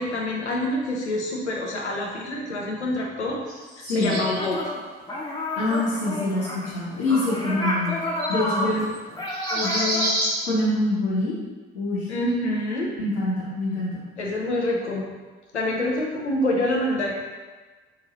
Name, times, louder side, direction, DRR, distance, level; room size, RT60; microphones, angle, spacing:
voice 1, 0.0-3.4 3.8-4.7 8.7-8.9 12.1-12.9 14.2-15.0 15.5-17.1, left 1 dB, 85° left, -2 dB, 0.6 m, -26 dB
sound 1, 3.5-4.5 5.7-6.0 6.5-6.6 7.9-8.0 8.2-8.5 8.9-9.0 9.3-10.3, right 1 dB, 80° right, 0.9 m, -28 dB
voice 2, 3.8-4.1 5.6-8.0 8.3-8.7 9.5-10.1 10.5-11.4 11.7-12.1 13.0-14.0, left 2 dB, 65° left, -10 dB, 1.0 m, -25 dB
sound 2, 4.0-4.8 5.1-10.0, left 1 dB, 10° left, 0.8 m, -30 dB
4.9 x 2.7 x 3.0 m, 1.3 s
figure-of-eight pair, 45°, 33 cm